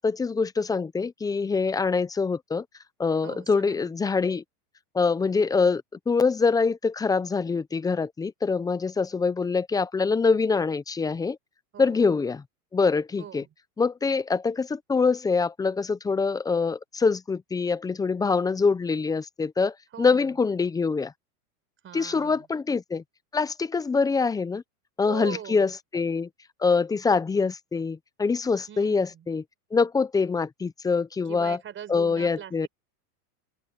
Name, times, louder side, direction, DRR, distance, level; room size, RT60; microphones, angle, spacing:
voice 1, 0.0-2.6 3.0-4.4 4.9-11.4 11.8-12.4 12.7-13.4 13.8-21.1 21.9-23.0 23.3-24.6 25.0-26.3 26.6-29.4 29.7-31.6 31.9-32.7, left 4 dB, 10° left, 0.6 m, -24 dB
voice 2, 3.2-3.9 11.7-12.1 13.2-13.5 19.9-20.4 21.8-22.5 25.0-25.7 28.7-29.3 31.3-32.7, right 9 dB, 25° right, 4.6 m, -41 dB
open air
supercardioid pair, 130°, 46 cm